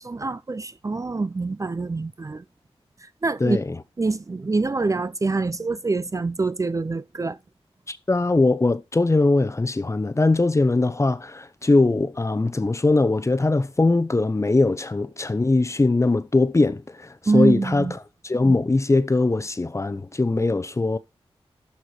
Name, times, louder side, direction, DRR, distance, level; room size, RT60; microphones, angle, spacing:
voice 1, 0.0-2.4 3.0-3.6 4.0-7.4 17.3-17.9, right 3 dB, 30° right, 0.5 m, -25 dB
voice 2, 3.4-3.8 7.9-17.9 18.2-21.0, left 2 dB, 30° left, 0.8 m, -21 dB
12.5 x 4.5 x 4.9 m
wide cardioid pair, 75°, 10 cm